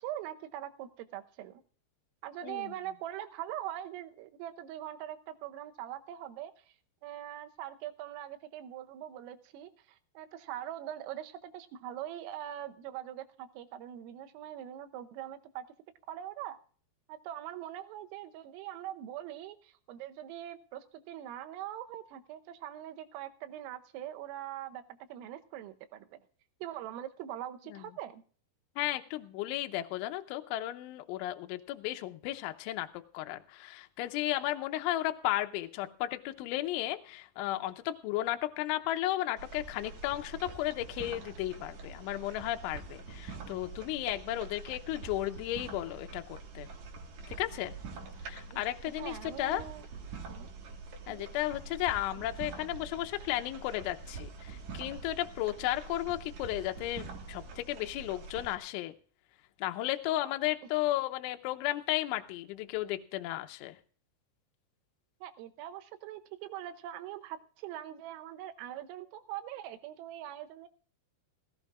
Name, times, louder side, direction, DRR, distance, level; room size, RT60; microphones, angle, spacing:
voice 1, 0.0-1.6 2.2-6.7 7.0-15.7 16.1-16.6 17.1-26.2 26.6-28.2 48.5-48.6 49.0-49.9 50.3-50.5 51.1-51.3 65.2-70.7, right 12 dB, 85° right, 8 dB, 3.5 m, -42 dB
voice 2, 2.4-2.7 27.7-27.8 28.8-32.9 33.1-46.7 47.3-47.7 48.2-49.6 51.1-58.9 59.6-63.8, left 15 dB, 80° left, 6 dB, 3.0 m, -34 dB
sound 1, 39.4-58.6, right 4 dB, 65° right, 1.8 m, -45 dB
17.5 x 17.0 x 2.4 m, 0.43 s
omnidirectional pair, 5.9 m